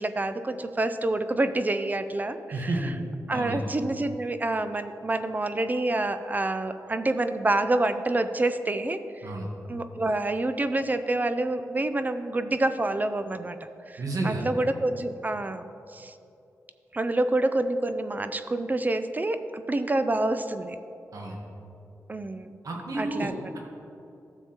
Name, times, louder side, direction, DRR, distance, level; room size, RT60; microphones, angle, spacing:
voice 1, 0.0-2.9 3.3-9.3 9.7-13.6 13.9-15.7 15.9-16.1 16.9-20.8 22.1-22.6 22.9-23.5, right 2 dB, 25° right, 10 dB, 0.4 m, -27 dB
voice 2, 2.5-2.9 3.3-3.7 9.2-9.5 14.0-14.4 21.1-21.4 22.6-23.3, right 2 dB, 65° right, -1 dB, 1.3 m, -30 dB
12.5 x 7.1 x 2.9 m, 2.7 s
cardioid pair, 85°, 6 cm